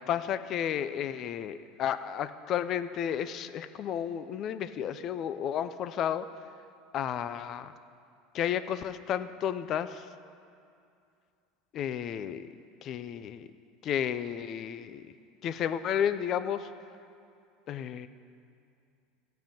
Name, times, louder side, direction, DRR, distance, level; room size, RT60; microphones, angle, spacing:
voice 1, 0.1-6.3 6.9-7.7 8.3-10.0 11.7-12.5 12.8-13.5 13.8-15.0 15.4-16.7 17.7-18.1, left 9 dB, 45° left, 13 dB, 0.5 m, -32 dB
14.0 x 5.7 x 8.9 m, 2.5 s
supercardioid pair, 110°, 0 cm